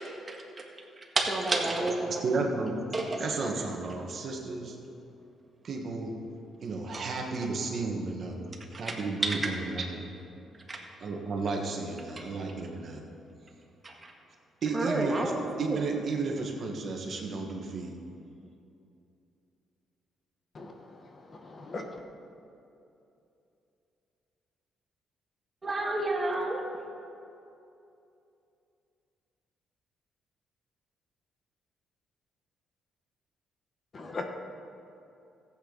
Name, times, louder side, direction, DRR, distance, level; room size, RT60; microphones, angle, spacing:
voice 1, 1.2-2.4 2.9-3.2 8.9-9.0 9.2-9.5 10.7-10.8 13.8-14.1 14.7-15.8 25.6-26.6, right 2 dB, 25° right, 0 dB, 1.9 m, -30 dB
voice 2, 2.1-2.7 3.2-4.8 5.6-6.2 6.6-10.0 11.0-13.0 14.6-15.3 15.6-17.9, right 3 dB, 55° right, 1 dB, 1.6 m, -33 dB
voice 3, 21.4-21.8 33.9-34.2, left 3 dB, 40° left, 4 dB, 1.2 m, -37 dB
15.0 x 8.7 x 4.1 m, 2.7 s
cardioid pair, 90°, 0 cm